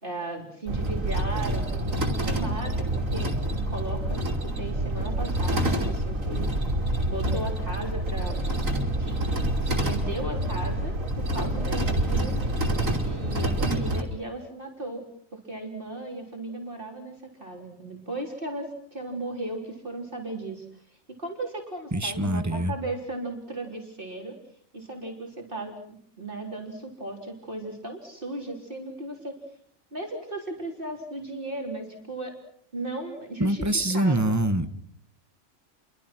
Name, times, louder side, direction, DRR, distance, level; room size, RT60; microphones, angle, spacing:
voice 1, 0.0-3.4 3.7-6.5 7.1-8.6 9.0-9.2 9.6-12.4 13.0-15.0 15.3-20.8 21.2-24.4 24.7-29.4 29.9-32.3 32.7-33.7 33.9-34.3, right 2 dB, 40° right, 1 dB, 4.1 m, -36 dB
sound 1, 0.7-14.0, right 1 dB, 80° right, 3.6 m, -27 dB
voice 2, 21.9-22.7 33.4-34.7, right 1 dB, 15° right, 10 dB, 1.4 m, -24 dB
30.0 x 24.0 x 6.1 m, 0.64 s
omnidirectional pair, 1.3 m